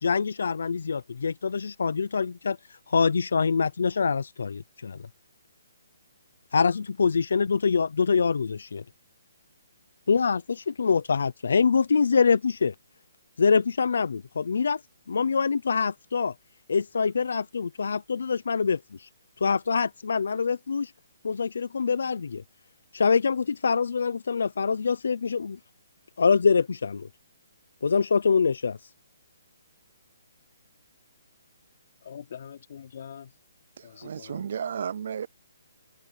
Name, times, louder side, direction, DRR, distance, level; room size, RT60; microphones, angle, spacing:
voice 1, 0.0-5.0 6.5-8.8 10.1-12.7 13.4-14.8 15.1-16.3 16.7-19.1 19.4-20.9 21.2-22.4 22.9-25.6 26.2-27.1 27.8-28.8, left 5 dB, 65° left, 0.6 m, -25 dB
voice 2, 32.0-33.4 33.8-34.5, left 8 dB, 40° left, 3.9 m, -44 dB
voice 3, 34.0-35.3, right 7 dB, 40° right, 0.3 m, -32 dB
open air
hypercardioid pair, 175°, 0 cm